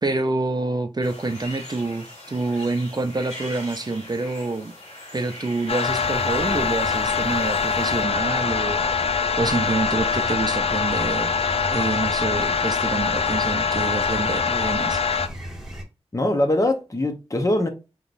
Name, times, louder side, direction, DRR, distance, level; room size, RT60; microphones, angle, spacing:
voice 1, 0.0-4.7 5.1-11.3 11.7-15.0, right 3 dB, 40° right, 0.5 m, -27 dB
sound 1, 1.0-8.0, left 1 dB, 90° left, 1.6 m, -41 dB
sound 2, 5.7-15.3, left 5 dB, 65° left, 0.4 m, -23 dB
sound 3, 5.8-15.8, equal, 5° right, 1.5 m, -36 dB
voice 2, 16.1-17.7, left 1 dB, 30° left, 0.9 m, -22 dB
3.7 x 3.0 x 2.5 m
cardioid pair, 45°, 11 cm